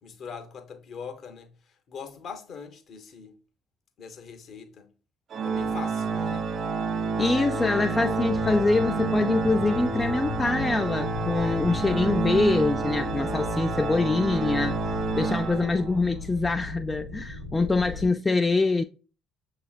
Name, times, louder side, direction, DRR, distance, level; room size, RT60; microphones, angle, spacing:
voice 1, 0.0-3.4 4.0-4.9 5.4-6.5, left 6 dB, 45° left, 1.0 m, -41 dB
Organ, 5.3-16.2, right 4 dB, 45° right, 0.4 m, -29 dB
voice 2, 7.2-14.8 15.2-18.8, left 3 dB, 20° left, 0.3 m, -24 dB
sound 1, 7.9-14.4, left 7 dB, 65° left, 1.5 m, -40 dB
sound 2, 11.0-18.1, left 3 dB, 85° right, 0.8 m, -38 dB
6.9 x 3.0 x 2.3 m
figure-of-eight pair, 50°, 0 cm